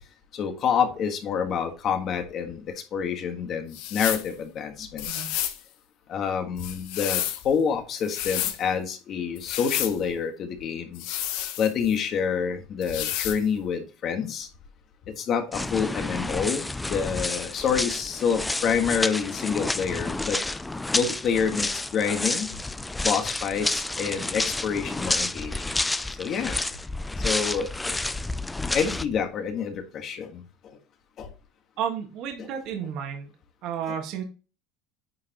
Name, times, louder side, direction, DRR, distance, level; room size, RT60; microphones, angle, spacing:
voice 1, 0.3-2.6 2.9-5.1 6.1-11.0 11.6-14.5 15.2-20.4 20.9-22.5 23.0-25.6 26.2-26.6 27.2-28.0 28.7-30.4 31.2-31.3 32.4-32.5, left 7 dB, 40° left, 6 dB, 1.5 m, -27 dB
sound 1, 3.7-4.3 5.0-5.6 6.6-7.4 8.0-8.6 9.4-10.0 10.9-12.0 12.8-13.4, left 12 dB, 70° left, 1.0 m, -30 dB
sound 2, 15.5-29.0, left 2 dB, 10° left, 0.3 m, -30 dB
voice 2, 31.8-33.3 33.6-34.2, right 8 dB, 55° right, 3 dB, 1.7 m, -32 dB
9.5 x 4.9 x 3.0 m, 0.33 s
cardioid pair, 140°, 0 cm